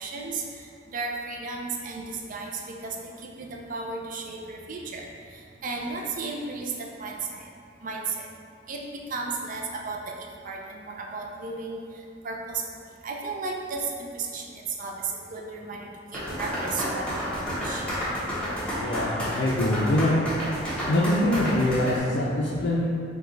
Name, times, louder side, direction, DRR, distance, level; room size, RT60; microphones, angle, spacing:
voice 1, 0.0-7.5 7.8-8.3 8.7-11.8 12.2-12.6 13.0-17.8, right 4 dB, 45° right, 0 dB, 0.5 m, -34 dB
sound 1, 16.1-22.0, equal, 5° left, 1.2 m, -30 dB
voice 2, 18.8-20.2 20.9-22.9, left 1 dB, 65° left, -5 dB, 0.5 m, -24 dB
4.7 x 2.3 x 3.9 m, 2.3 s
head